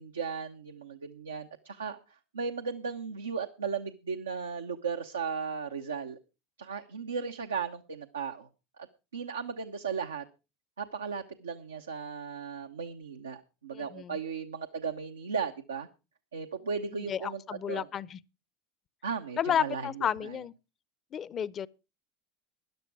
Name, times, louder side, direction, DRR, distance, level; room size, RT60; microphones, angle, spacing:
voice 1, 0.0-6.2 6.6-8.5 8.8-8.9 9.1-10.2 10.8-15.9 16.3-17.4 17.7-17.9 19.0-20.4, right 6 dB, 85° right, 0.8 m, -36 dB
voice 2, 13.7-14.2 16.9-18.2 19.4-20.5 21.1-21.7, left 9 dB, 35° left, 0.7 m, -32 dB
13.0 x 10.5 x 4.7 m
hypercardioid pair, 80°, 0 cm